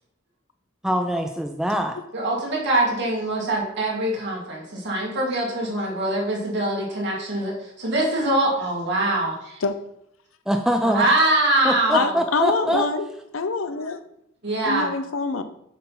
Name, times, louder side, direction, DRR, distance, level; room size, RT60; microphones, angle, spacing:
voice 1, 0.8-2.0 10.5-11.0 11.6-12.9, equal, ahead, 4 dB, 0.4 m, -23 dB
voice 2, 2.1-9.6 10.8-12.2 14.4-14.9, right 1 dB, 60° right, -2 dB, 2.4 m, -23 dB
voice 3, 11.9-13.1 13.3-14.0 14.6-15.4, left 4 dB, 80° left, 10 dB, 0.7 m, -25 dB
7.5 x 3.8 x 5.8 m, 0.76 s
head